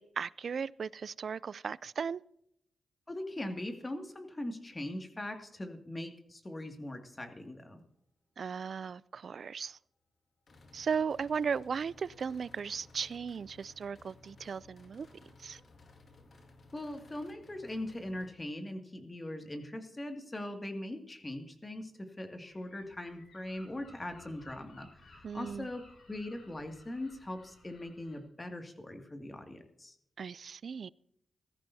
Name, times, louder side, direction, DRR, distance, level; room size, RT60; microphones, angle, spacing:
voice 1, 0.0-2.2 8.4-9.8 10.7-15.1 15.4-15.6 25.2-25.7 30.2-30.9, right 6 dB, 65° right, 0.3 m, -36 dB
voice 2, 3.1-7.8 16.7-25.8 26.1-29.9, left 1 dB, 25° left, 2.2 m, -41 dB
sound 1, 8.6-8.9 10.5-18.3, left 2 dB, 60° left, 2.1 m, -58 dB
Gull seagull, 22.4-28.2, left 2 dB, 80° left, 5.7 m, -59 dB
17.0 x 14.0 x 2.8 m
cardioid pair, 60°, 0 cm